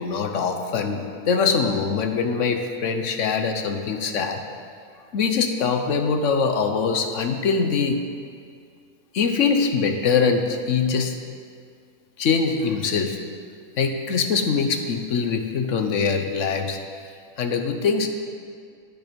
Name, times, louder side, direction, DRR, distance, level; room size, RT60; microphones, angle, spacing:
voice 1, 0.0-4.4 5.1-8.0 9.1-11.1 12.2-13.2 13.8-16.8 17.4-18.1, left 5 dB, 60° left, 6 dB, 1.1 m, -23 dB
10.5 x 9.4 x 5.2 m, 2.2 s
omnidirectional pair, 1.5 m